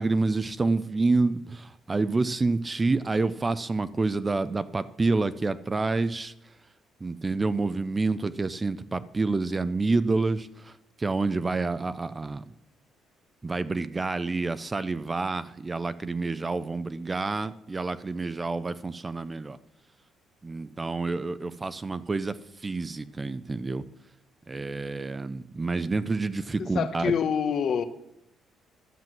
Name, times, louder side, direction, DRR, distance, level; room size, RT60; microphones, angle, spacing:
voice 1, 0.0-6.3 7.0-10.7 11.0-12.4 13.4-19.6 20.4-22.4 22.6-23.8 24.5-27.1, right 3 dB, 15° right, 14 dB, 0.4 m, -28 dB
voice 2, 26.7-27.9, left 7 dB, 45° left, 11 dB, 0.9 m, -26 dB
12.0 x 7.5 x 7.6 m, 0.83 s
cardioid pair, 170°, 0 cm